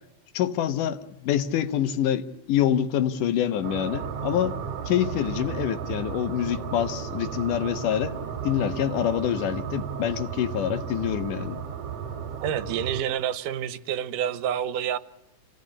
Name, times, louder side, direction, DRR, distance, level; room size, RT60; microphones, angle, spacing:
voice 1, 0.3-4.6 4.9-8.2 8.4-11.6, left 10 dB, 80° left, 2.7 m, -26 dB
sound 1, 3.6-13.0, right 7 dB, 65° right, 3.5 m, -34 dB
voice 2, 12.4-15.0, right 9 dB, 85° right, 2.6 m, -28 dB
26.5 x 17.0 x 9.9 m
omnidirectional pair, 3.6 m